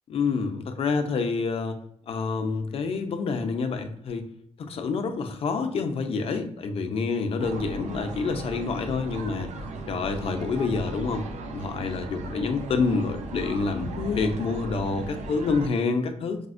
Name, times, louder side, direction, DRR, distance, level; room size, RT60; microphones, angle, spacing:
voice 1, 0.1-1.8 2.1-4.2 4.6-9.5 9.9-16.4, left 4 dB, 55° left, 6 dB, 0.4 m, -27 dB
sound 1, 7.4-15.7, right 2 dB, 80° right, 0.4 m, -36 dB
4.8 x 2.0 x 2.4 m, 0.71 s
wide cardioid pair, 175°, 12 cm